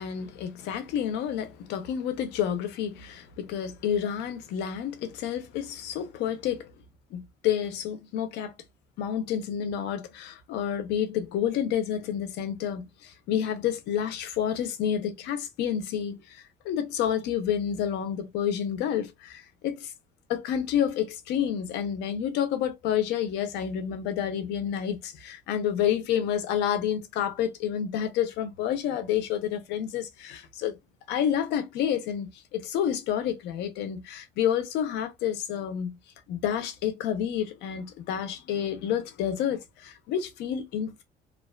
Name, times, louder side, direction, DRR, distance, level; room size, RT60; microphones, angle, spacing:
voice 1, 0.0-6.7 7.1-8.5 9.0-19.9 20.3-30.8 31.1-36.0 36.3-41.0, left 9 dB, 85° left, 0.6 m, -29 dB
2.4 x 2.3 x 2.2 m
cardioid pair, 110°, 17 cm